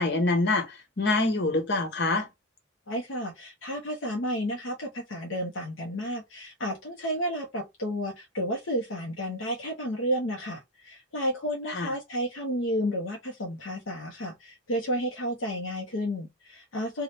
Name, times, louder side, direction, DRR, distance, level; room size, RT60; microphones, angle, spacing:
voice 1, 0.0-2.3 11.7-11.9, left 2 dB, 60° left, 1.1 m, -25 dB
voice 2, 2.9-17.0, equal, 75° left, 0.8 m, -31 dB
3.3 x 2.3 x 4.1 m
head